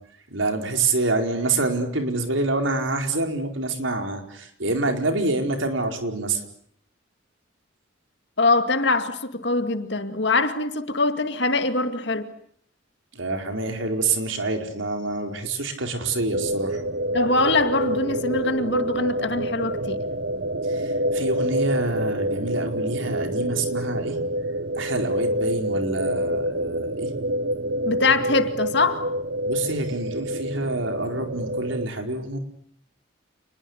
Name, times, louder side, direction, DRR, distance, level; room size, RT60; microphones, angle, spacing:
voice 1, 0.3-6.4 13.1-16.8 20.6-24.2 24.7-27.1 29.5-32.4, right 2 dB, 80° right, 4.7 m, -26 dB
voice 2, 8.4-12.3 17.1-20.0 27.8-29.1, left 3 dB, 60° left, 2.3 m, -23 dB
sound 1, 16.3-31.9, right 1 dB, 60° right, 1.0 m, -27 dB
28.5 x 21.5 x 8.2 m
head